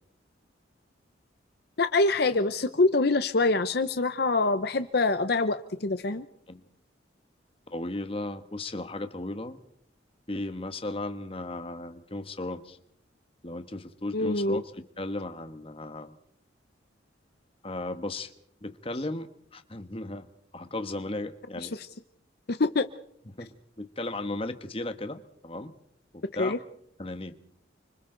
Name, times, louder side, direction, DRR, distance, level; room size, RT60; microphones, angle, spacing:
voice 1, 1.8-6.3 14.1-14.6 21.6-21.7 22.5-22.9 26.4-26.6, left 3 dB, 55° left, 10 dB, 0.8 m, -25 dB
voice 2, 7.7-9.6 10.3-12.8 13.4-14.7 15.0-16.1 17.6-18.3 18.6-20.3 20.5-21.8 23.4-25.7 26.1-26.5 27.0-27.4, left 2 dB, 30° left, 9 dB, 1.3 m, -35 dB
29.5 x 25.5 x 3.9 m, 0.69 s
head